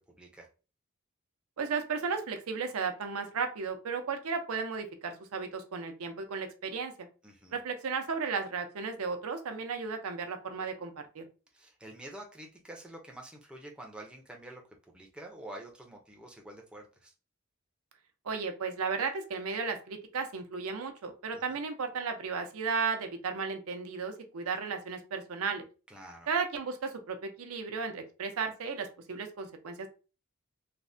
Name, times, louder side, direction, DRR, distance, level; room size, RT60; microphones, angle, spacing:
voice 1, 0.2-0.5 7.2-7.6 11.5-14.6 14.9-17.1 21.3-21.6 25.9-26.3, right 1 dB, 5° right, 0 dB, 0.5 m, -48 dB
voice 2, 1.6-7.1 7.5-11.2 18.2-25.6 26.3-29.9, right 5 dB, 85° right, 6 dB, 0.5 m, -34 dB
3.2 x 2.1 x 2.5 m, 0.33 s
head